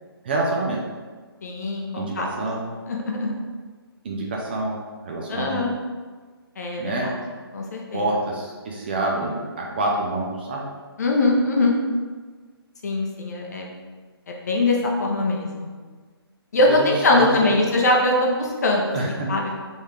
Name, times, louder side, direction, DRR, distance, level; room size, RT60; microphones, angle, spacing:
voice 1, 0.2-0.8 2.0-2.7 4.0-4.8 5.0-5.6 6.8-7.1 7.9-10.6 16.7-17.6 18.9-19.3, right 2 dB, 25° right, -2 dB, 0.4 m, -27 dB
voice 2, 1.4-2.3 2.9-3.3 5.3-5.7 6.6-7.1 7.5-8.0 11.0-11.7 12.8-13.6 14.3-15.7 16.5-19.0 19.3-19.6, left 2 dB, 40° left, 0 dB, 0.7 m, -22 dB
3.9 x 3.5 x 3.1 m, 1.4 s
figure-of-eight pair, 140°, 13 cm